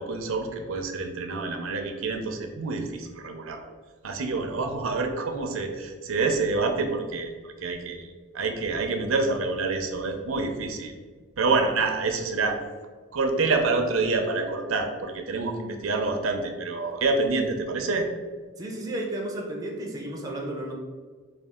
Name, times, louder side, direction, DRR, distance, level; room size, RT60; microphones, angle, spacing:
voice 1, 0.0-3.6 4.0-7.3 7.6-8.1 8.3-10.9 11.4-12.6 13.1-18.1, right 3 dB, 85° right, 4 dB, 0.5 m, -27 dB
voice 2, 18.6-20.7, right 1 dB, 15° right, -1 dB, 0.5 m, -33 dB
4.3 x 2.3 x 3.6 m, 1.5 s
head